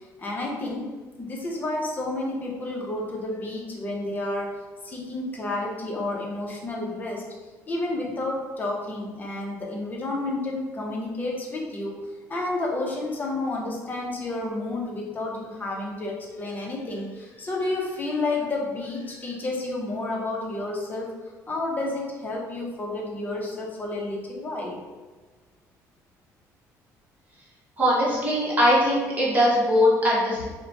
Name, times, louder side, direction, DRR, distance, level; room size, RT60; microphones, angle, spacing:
voice 1, 0.2-0.9 1.2-4.5 4.8-7.2 7.7-21.1 21.5-24.8, left 2 dB, 25° left, -2 dB, 0.7 m, -30 dB
voice 2, 27.8-30.4, equal, 25° right, -6 dB, 1.1 m, -21 dB
2.9 x 2.2 x 4.0 m, 1.3 s
cardioid pair, 125°, 7 cm